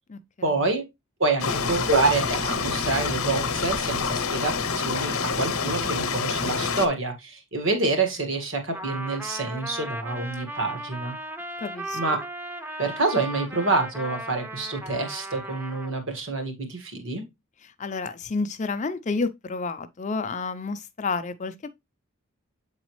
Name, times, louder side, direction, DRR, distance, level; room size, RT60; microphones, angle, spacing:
voice 1, 0.4-0.8 1.2-11.1 11.9-12.2 12.8-17.2, right 3 dB, 60° right, 1.7 m, -27 dB
sound 1, 1.4-6.9, left 5 dB, 75° left, 0.8 m, -27 dB
Trumpet, 8.7-16.0, right 1 dB, 10° right, 0.6 m, -36 dB
voice 2, 11.6-12.0 17.6-21.7, left 4 dB, 35° left, 0.5 m, -30 dB
8.0 x 4.0 x 3.1 m
head